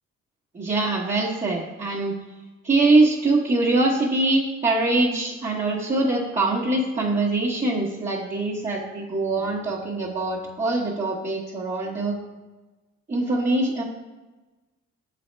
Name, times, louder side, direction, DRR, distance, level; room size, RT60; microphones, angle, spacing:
voice 1, 0.5-2.1 2.6-12.1 13.1-13.8, right 2 dB, 25° right, -7 dB, 1.0 m, -23 dB
6.2 x 4.2 x 4.4 m, 1.2 s
cardioid pair, 90°, 30 cm